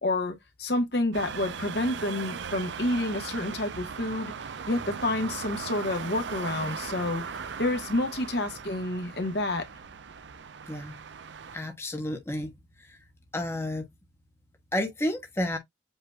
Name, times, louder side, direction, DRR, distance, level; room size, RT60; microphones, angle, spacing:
voice 1, 0.0-4.3 4.7-7.2 7.6-9.7, left 1 dB, 60° left, 1.3 m, -29 dB
sound 1, 1.1-11.6, right 6 dB, 75° right, 0.5 m, -38 dB
voice 2, 11.5-12.5 12.8-13.0 13.3-13.8 14.7-15.6, left 1 dB, 15° left, 1.1 m, -31 dB
7.9 x 2.8 x 2.3 m
head